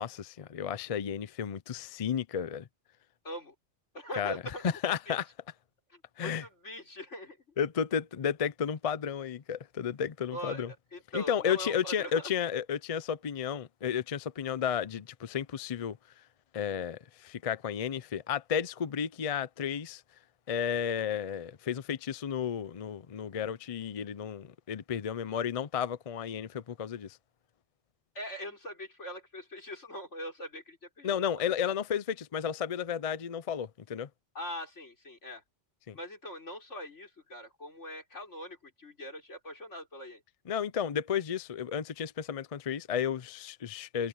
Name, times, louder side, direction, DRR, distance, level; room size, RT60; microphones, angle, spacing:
voice 1, 0.0-2.7 4.2-4.3 4.8-5.2 6.2-6.4 7.6-10.7 11.1-16.0 16.5-20.0 20.5-27.2 31.0-34.1 35.9-36.0 40.5-44.1, left 8 dB, 40° left, 0.5 m, -33 dB
voice 2, 3.2-3.5 3.9-4.6 5.1-5.2 5.9-7.4 10.3-12.3 28.2-31.5 34.3-35.4 35.9-40.2, equal, 85° left, 5.4 m, -42 dB
omnidirectional pair, 1.2 m